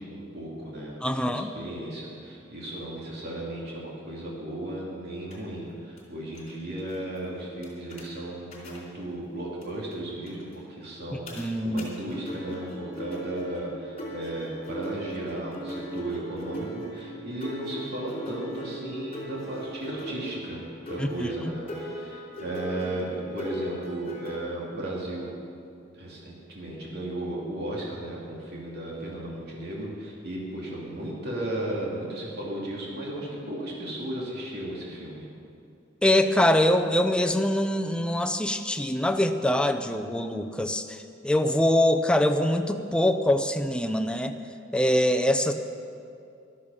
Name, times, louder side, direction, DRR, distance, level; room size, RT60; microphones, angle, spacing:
voice 1, 0.0-25.4 25.9-35.3, right 1 dB, 55° right, -4 dB, 2.7 m, -35 dB
voice 2, 1.0-1.5 11.4-11.9 21.0-21.3 36.0-44.3 44.7-45.5, left 1 dB, 5° left, 6 dB, 0.6 m, -24 dB
sound 1, 5.3-5.4 6.0-6.1 6.3-6.5 6.8-6.9 7.6-8.1 8.5-8.8 9.6-9.7 9.9-10.0 10.2-10.4 11.3-11.4 11.8-11.9 12.1-24.4, right 1 dB, 35° left, 3.6 m, -39 dB
14.0 x 12.5 x 5.6 m, 2.5 s
head